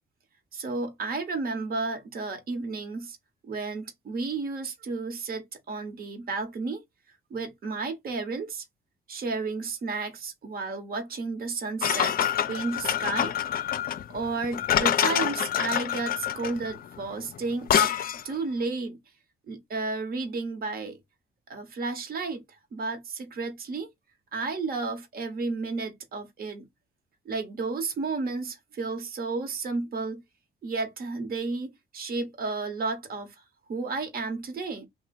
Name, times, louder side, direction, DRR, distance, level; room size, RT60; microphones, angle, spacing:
voice 1, 0.5-3.2 3.4-6.8 7.3-8.6 9.1-13.3 14.1-17.9 18.2-19.0 19.5-21.0 21.5-22.4 22.7-23.9 24.3-26.6 27.2-30.2 30.6-33.3 33.7-34.9, right 3 dB, 50° right, 1.0 m, -32 dB
sound 1, 11.8-18.3, left 10 dB, 50° left, 0.4 m, -26 dB
2.9 x 2.1 x 4.1 m
cardioid pair, 90°, 20 cm